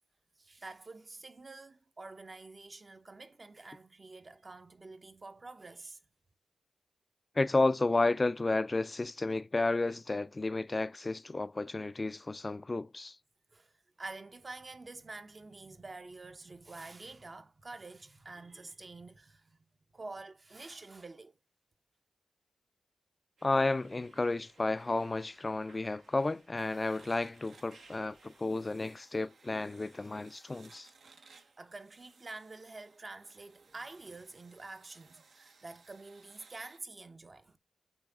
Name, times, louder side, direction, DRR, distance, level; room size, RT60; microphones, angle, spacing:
voice 1, 0.4-6.0 13.5-19.6 19.9-21.4 31.0-31.2 31.6-37.6, right 3 dB, 40° right, 0.8 m, -48 dB
voice 2, 7.4-13.2 23.4-30.9, left 2 dB, 35° left, 0.4 m, -32 dB
sound 1, 23.4-28.5, right 3 dB, 90° right, 1.7 m, -62 dB
sound 2, 26.6-36.8, right 4 dB, 75° right, 0.9 m, -62 dB
8.0 x 3.2 x 3.6 m
cardioid pair, 50°, 0 cm